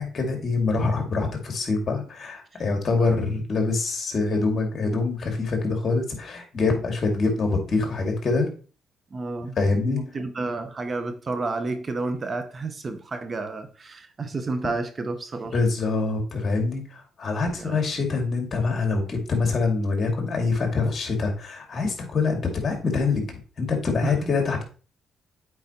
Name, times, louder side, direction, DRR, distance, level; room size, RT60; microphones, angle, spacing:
voice 1, 0.0-8.5 9.6-10.0 15.5-23.3 23.6-24.6, left 3 dB, 45° left, 3 dB, 2.2 m, -25 dB
voice 2, 9.1-9.5 9.8-15.6 17.5-17.8 24.0-24.3, right 3 dB, 35° right, 9 dB, 0.8 m, -31 dB
8.0 x 4.8 x 2.9 m, 0.37 s
cardioid pair, 90°, 0 cm